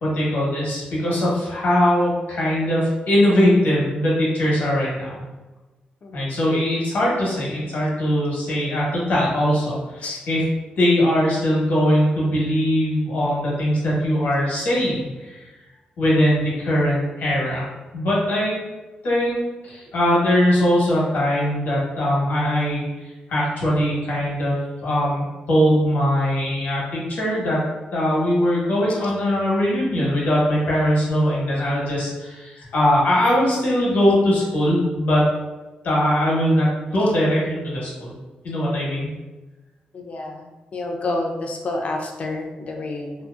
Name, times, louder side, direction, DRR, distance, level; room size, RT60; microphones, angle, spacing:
voice 1, 0.0-5.2 6.1-10.4 10.8-15.5 16.0-17.7 17.9-18.6 19.0-22.9 23.3-27.6 27.9-35.3 35.8-38.2 38.4-39.1, equal, 75° left, -5 dB, 1.0 m, -21 dB
voice 2, 6.0-6.3 10.0-10.2 39.9-43.2, left 2 dB, 45° left, 2 dB, 0.4 m, -29 dB
2.7 x 2.0 x 2.3 m, 1.1 s
wide cardioid pair, 130°, 3 cm